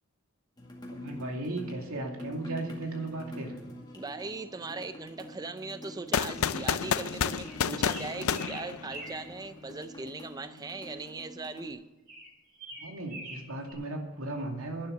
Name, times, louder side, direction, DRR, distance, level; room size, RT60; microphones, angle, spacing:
sound 1, 0.6-11.7, left 1 dB, 20° left, 2.1 m, -46 dB
voice 1, 0.9-3.6 12.8-14.9, right 2 dB, 85° right, 2 dB, 2.6 m, -36 dB
voice 2, 3.9-11.8, right 3 dB, 20° right, 10 dB, 0.5 m, -39 dB
Rifle Shooting, 6.1-9.3, left 7 dB, 85° left, 0.5 m, -30 dB
sound 2, 7.3-9.3 12.1-13.7, right 2 dB, 40° right, 5.1 m, -44 dB
11.5 x 9.6 x 7.1 m, 1.1 s
head